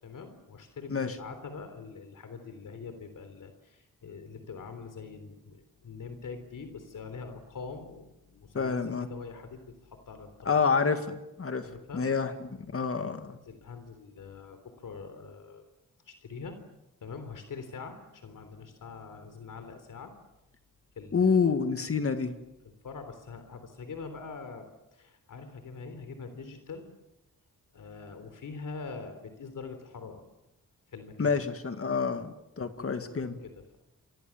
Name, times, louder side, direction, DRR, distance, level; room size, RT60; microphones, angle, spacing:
voice 1, 0.0-8.8 9.1-10.6 11.6-12.0 13.5-15.6 16.1-16.6 17.0-20.1 21.0-21.5 22.6-26.9 27.7-30.2 30.9-31.4 32.8-33.8, left 4 dB, 70° left, 8 dB, 3.5 m, -44 dB
voice 2, 8.5-9.1 10.5-12.3 12.7-13.4 21.1-22.3 31.2-33.4, left 5 dB, 45° left, 8 dB, 2.0 m, -28 dB
29.5 x 24.5 x 7.3 m, 0.91 s
wide cardioid pair, 110°, 33 cm